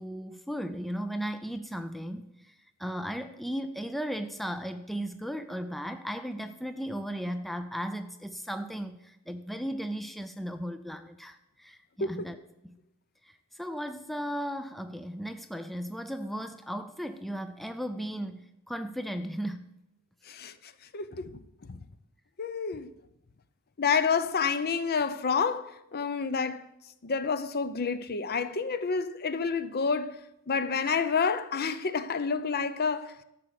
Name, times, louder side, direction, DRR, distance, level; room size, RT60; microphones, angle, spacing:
voice 1, 0.0-2.5 2.8-12.4 12.6-12.8 13.2-19.6, equal, ahead, 0.4 m, -36 dB
voice 2, 20.3-21.4 21.7-21.8 22.4-22.9 23.8-26.7 27.0-30.2 30.5-33.1, left 5 dB, 45° left, 0.6 m, -29 dB
12.5 x 6.2 x 6.8 m
head